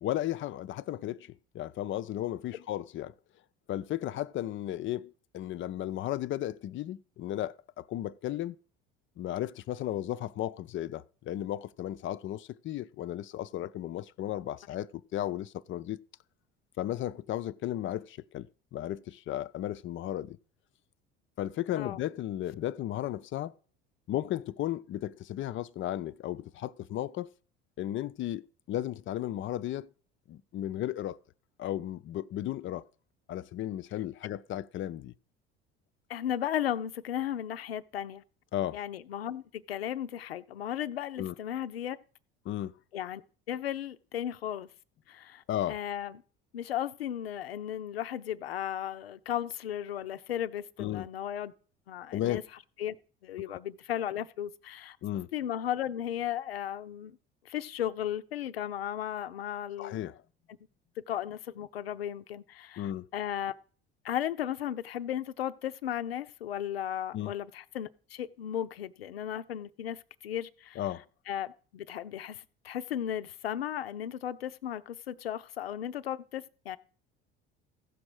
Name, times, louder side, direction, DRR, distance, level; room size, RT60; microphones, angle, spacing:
voice 1, 0.0-3.1 3.7-8.6 9.2-16.0 16.8-20.4 21.4-23.5 24.1-27.3 27.8-28.4 28.7-29.9 30.3-31.2 31.6-32.8 33.3-35.1 38.5-38.8 41.2-41.3 42.5-42.7 45.5-45.8 50.8-51.1 52.1-52.4 53.5-53.6 55.0-55.3 59.8-60.2 62.8-63.1 67.1-67.3 70.8-71.0, left 13 dB, 45° left, 0.5 m, -34 dB
voice 2, 36.1-38.2 38.7-42.0 42.9-43.2 43.5-44.7 45.1-45.4 45.7-46.2 46.5-51.5 51.9-52.4 52.8-52.9 53.2-55.0 55.3-57.2 57.5-60.0 61.1-63.5 64.0-70.8 71.3-76.8, left 10 dB, 90° left, 0.5 m, -35 dB
15.5 x 6.2 x 4.8 m
hypercardioid pair, 70°, 29 cm